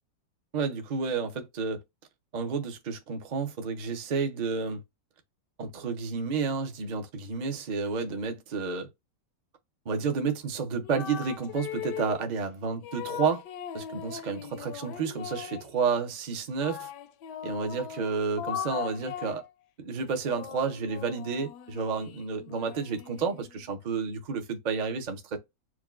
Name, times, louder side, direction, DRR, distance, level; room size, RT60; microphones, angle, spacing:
voice 1, 0.5-1.8 2.3-4.8 5.6-8.9 9.9-13.4 13.7-16.9 17.4-19.5 19.8-25.4, right 5 dB, 50° right, 0.5 m, -31 dB
sound 1, 10.8-12.3 12.8-15.7 16.6-19.5 20.0-23.6, left 10 dB, 80° left, 1.2 m, -39 dB
6.0 x 2.3 x 2.4 m
omnidirectional pair, 1.9 m